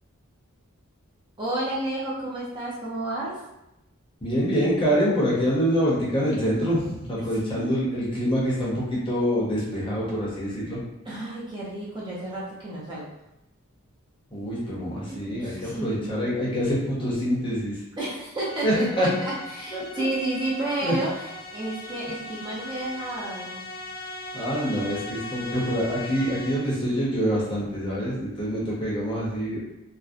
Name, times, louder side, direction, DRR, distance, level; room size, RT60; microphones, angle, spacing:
voice 1, 1.4-3.4 6.5-6.6 7.4-7.7 11.1-13.1 15.0-16.7 18.0-21.1 21.5-23.7, right 2 dB, 20° right, -7 dB, 0.5 m, -31 dB
voice 2, 4.2-10.8 14.3-17.7 18.6-19.1 19.7-20.1 20.8-20.9 24.3-29.6, equal, 25° left, -6 dB, 0.6 m, -25 dB
sound 1, 18.4-26.9, left 2 dB, 65° left, 0.6 m, -39 dB
2.5 x 2.0 x 2.4 m, 0.90 s
head